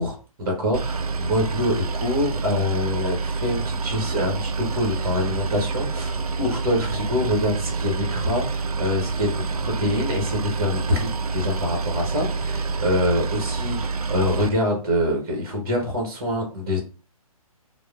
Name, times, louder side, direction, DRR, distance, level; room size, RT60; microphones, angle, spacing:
voice 1, 0.0-16.8, left 1 dB, 40° right, 1 dB, 1.0 m, -25 dB
Boat Water vehicle, 0.7-14.5, right 4 dB, 75° right, 0.4 m, -27 dB
4.7 x 2.0 x 2.4 m, 0.36 s
figure-of-eight pair, 135°, 19 cm